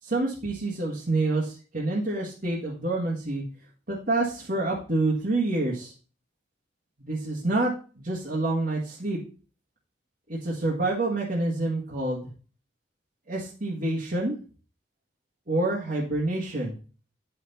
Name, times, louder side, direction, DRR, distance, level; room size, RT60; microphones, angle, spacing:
voice 1, 0.0-3.4 3.9-5.9 7.0-7.7 8.0-9.2 10.3-12.3 13.3-14.4 15.5-16.7, right 2 dB, 50° right, -5 dB, 1.8 m, -27 dB
9.8 x 5.7 x 4.2 m, 0.37 s
head